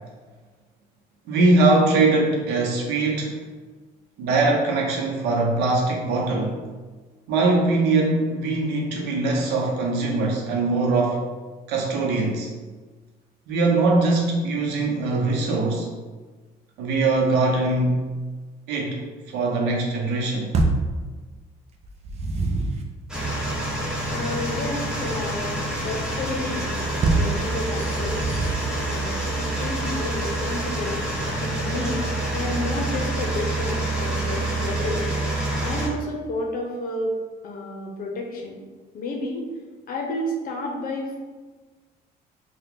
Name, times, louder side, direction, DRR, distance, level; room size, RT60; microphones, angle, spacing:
voice 1, 1.3-3.4 4.2-6.6 7.3-11.2 11.7-12.5 13.5-15.9 16.8-18.0 18.7-20.5, right 3 dB, 85° right, -1 dB, 0.8 m, -22 dB
sound 1, 20.5-20.9 21.8-22.9 27.0-27.4 28.0-28.7, right 3 dB, 40° right, 0.4 m, -24 dB
sound 2, 23.1-35.9, right 1 dB, 5° right, 0.8 m, -27 dB
voice 2, 24.1-26.7 27.1-28.3 28.8-31.0 31.4-35.1 35.6-37.2 37.4-38.6 38.9-39.4 39.9-41.2, left 2 dB, 55° left, 0 dB, 0.7 m, -31 dB
2.8 x 2.2 x 3.5 m, 1.4 s
cardioid pair, 110°, 17 cm